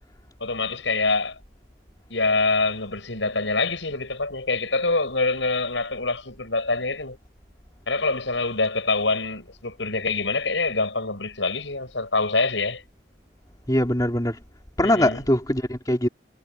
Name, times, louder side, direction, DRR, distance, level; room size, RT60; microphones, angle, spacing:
voice 1, 0.4-1.4 2.1-7.2 7.9-12.8 14.8-15.2, left 3 dB, 75° left, 7.3 m, -25 dB
voice 2, 13.7-14.4 14.8-16.1, left 1 dB, 20° left, 3.0 m, -22 dB
head